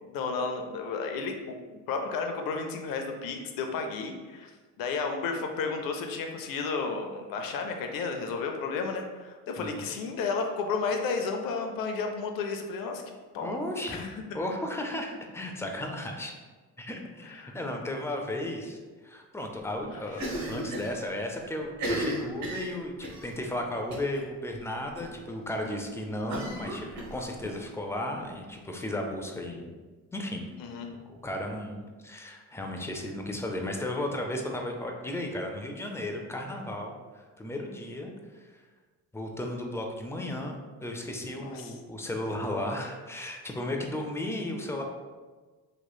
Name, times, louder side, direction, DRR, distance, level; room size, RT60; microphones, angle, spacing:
voice 1, 0.0-4.5 4.8-14.4 17.3-17.6 19.9-20.3 25.5-25.8 30.6-30.9 41.4-41.7, left 4 dB, 60° left, 4 dB, 0.6 m, -33 dB
voice 2, 9.6-9.9 13.4-14.0 14.3-16.3 16.8-18.8 19.0-20.2 20.5-29.7 30.1-30.5 31.1-38.6 39.1-44.8, left 1 dB, 10° left, 2 dB, 0.3 m, -35 dB
Cough, 20.1-20.9 21.2-21.3 21.7-23.2 23.9-24.2 24.5-24.6 25.0-25.1 26.3-27.5, equal, 45° right, 0.9 m, -34 dB
3.1 x 2.9 x 2.2 m, 1.4 s
supercardioid pair, 70°, 39 cm